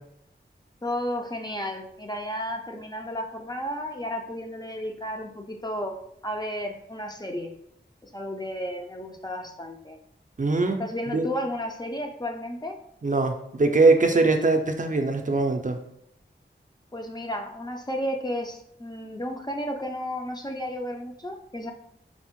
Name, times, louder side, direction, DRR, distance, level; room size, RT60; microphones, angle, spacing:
voice 1, 0.8-6.0 6.2-7.5 8.0-10.0 10.8-12.8 16.9-21.7, equal, 20° left, 2 dB, 0.4 m, -33 dB
voice 2, 10.4-10.8 11.1-11.3 13.0-15.8, right 3 dB, 40° right, 4 dB, 0.4 m, -21 dB
4.2 x 2.0 x 2.9 m, 0.76 s
wide cardioid pair, 45°, 20 cm